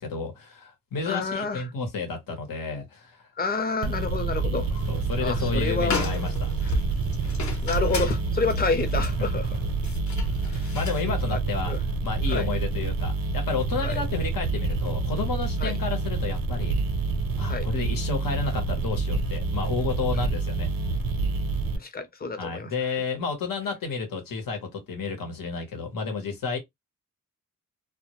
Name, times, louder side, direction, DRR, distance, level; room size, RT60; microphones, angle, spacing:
voice 1, 0.0-3.3 4.9-6.8 9.2-9.3 10.7-11.7 12.0-16.8 17.4-20.7 22.4-26.6, left 4 dB, 90° left, 1.0 m, -31 dB
voice 2, 1.0-1.7 3.4-4.7 5.2-6.1 7.6-9.6 10.5-10.7 11.1-11.4 11.7-11.8 12.3-12.5 13.8-14.0 15.6-15.8 17.5-17.7 21.8-23.0, left 4 dB, 30° left, 0.6 m, -29 dB
sound 1, 3.8-21.8, right 3 dB, 85° right, 0.6 m, -27 dB
sound 2, 4.5-5.0 5.3-5.4 5.8-11.1, left 3 dB, 60° left, 0.8 m, -34 dB
2.2 x 2.1 x 2.9 m
wide cardioid pair, 105°, 33 cm